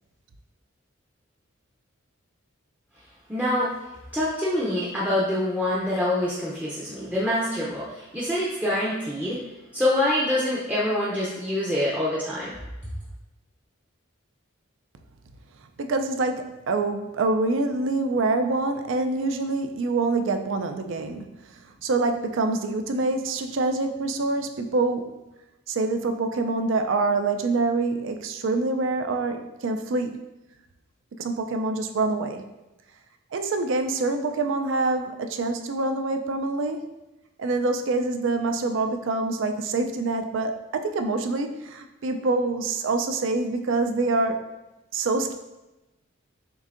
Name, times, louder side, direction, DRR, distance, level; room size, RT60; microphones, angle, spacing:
voice 1, 3.3-3.7 4.1-9.4 9.7-12.5, left 1 dB, 5° right, -7 dB, 0.5 m, -25 dB
voice 2, 15.8-25.2 25.7-30.2 31.1-32.4 33.3-36.9 37.4-44.4 44.9-45.3, right 3 dB, 65° right, 6 dB, 0.4 m, -26 dB
6.7 x 2.7 x 2.5 m, 1.0 s
head